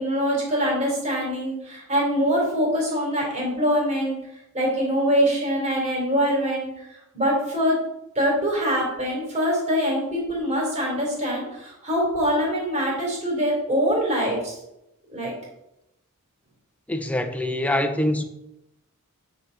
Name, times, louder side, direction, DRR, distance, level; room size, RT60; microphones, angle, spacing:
voice 1, 0.0-4.2 4.5-6.7 7.1-7.8 8.2-14.6 15.1-15.3, equal, 30° right, 3.6 m, -24 dB
voice 2, 16.9-18.2, left 1 dB, 5° left, 0.8 m, -24 dB
9.7 x 7.7 x 4.1 m
head